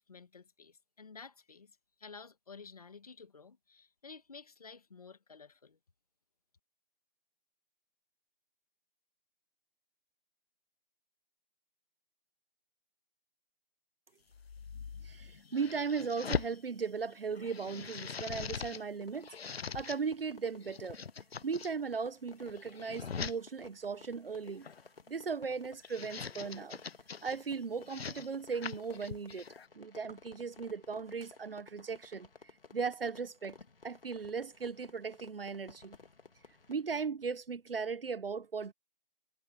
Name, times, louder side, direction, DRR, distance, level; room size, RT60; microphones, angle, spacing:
voice 1, 0.0-5.8, left 5 dB, 40° left, 1.9 m, -53 dB
sound 1, 14.3-16.6 17.1-18.8 19.1-20.0 20.6-21.7 22.3-23.4 24.4-24.9 25.6-27.4 27.8-29.7, left 6 dB, 90° left, 0.8 m, -41 dB
voice 2, 15.0-21.0 21.4-24.7 25.1-26.8 27.2-29.5 29.7-32.3 32.7-33.6 33.8-36.0 36.7-38.7, right 5 dB, 70° right, 1.1 m, -37 dB
Fireworks, 19.0-36.9, left 4 dB, 70° left, 2.8 m, -56 dB
hypercardioid pair, 175°, 30 cm